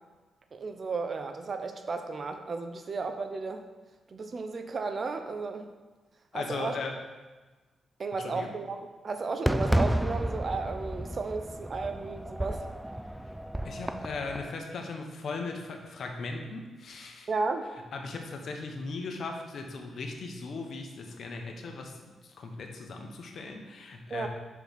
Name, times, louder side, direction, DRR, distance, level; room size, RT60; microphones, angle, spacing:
voice 1, 0.5-3.6 4.1-5.7 6.3-6.7 8.0-8.8 9.0-12.6 17.3-17.7 24.1-24.3, right 4 dB, 50° right, 7 dB, 0.7 m, -33 dB
voice 2, 6.3-7.0 8.2-8.5 13.6-17.3 17.9-24.3, left 3 dB, 65° left, 3 dB, 1.1 m, -38 dB
Fireworks, 9.5-14.5, right 1 dB, 5° right, 0.3 m, -31 dB
6.2 x 4.9 x 5.2 m, 1.3 s
cardioid pair, 80°, 0 cm